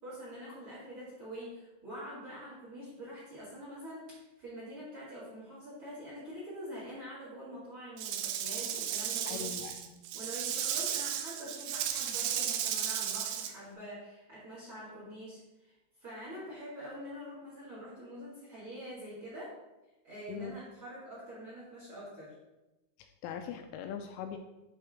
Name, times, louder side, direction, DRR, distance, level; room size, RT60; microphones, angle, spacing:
voice 1, 0.0-4.1 4.4-9.5 10.1-15.7 16.0-19.5 20.0-22.3, equal, 35° right, -8 dB, 2.3 m, -45 dB
Rattle / Rattle (instrument), 8.0-13.5, right 9 dB, 85° right, 2.5 m, -34 dB
voice 2, 9.3-10.0 20.3-20.6 23.0-24.4, left 8 dB, 85° left, 6 dB, 2.9 m, -41 dB
11.0 x 4.1 x 3.7 m, 1.0 s
omnidirectional pair, 5.8 m